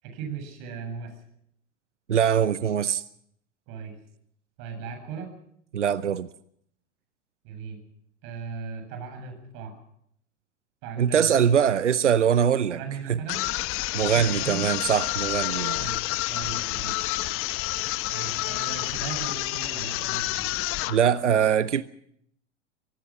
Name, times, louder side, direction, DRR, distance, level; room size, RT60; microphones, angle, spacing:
voice 1, 0.0-1.2 3.7-4.0 4.6-5.3 7.4-7.8 8.2-9.8 10.8-11.3 12.7-13.5 14.1-14.7 15.8-16.0 16.3-17.1 18.1-20.5, right 5 dB, 50° right, 7.5 m, -37 dB
voice 2, 2.1-3.0 5.7-6.3 11.0-12.8 13.1-13.2 13.9-15.9 20.9-21.8, right 8 dB, 85° right, 0.8 m, -22 dB
sound 1, 13.3-21.0, left 18 dB, 40° left, 1.0 m, -29 dB
24.5 x 19.0 x 6.0 m
figure-of-eight pair, 85°, 35 cm